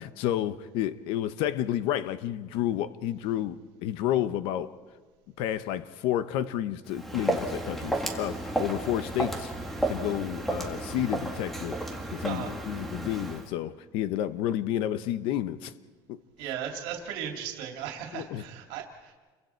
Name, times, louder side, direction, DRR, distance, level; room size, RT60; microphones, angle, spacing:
voice 1, 0.0-4.7 5.4-9.5 9.9-11.8 12.1-15.7 16.1-16.2 18.1-18.4, left 12 dB, 65° left, 13 dB, 0.9 m, -30 dB
Walk footsteps, 6.9-13.5, right 1 dB, ahead, 1.8 m, -32 dB
voice 2, 16.4-19.1, right 9 dB, 80° right, 3 dB, 2.7 m, -36 dB
29.5 x 23.5 x 4.5 m, 1.4 s
cardioid pair, 170°, 9 cm